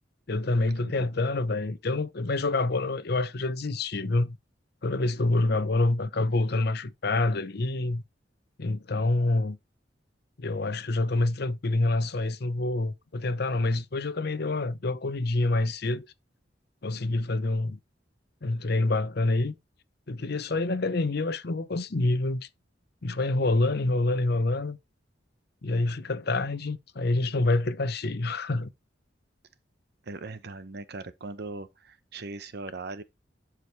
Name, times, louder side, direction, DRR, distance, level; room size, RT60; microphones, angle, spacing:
voice 1, 0.3-4.4 4.8-8.0 8.6-9.6 10.4-16.1 16.8-17.8 18.4-19.5 20.1-22.5 23.0-24.8 25.6-28.7, left 2 dB, 60° left, 0.8 m, -27 dB
voice 2, 30.0-33.0, right 3 dB, 60° right, 0.8 m, -39 dB
11.5 x 4.9 x 3.2 m
head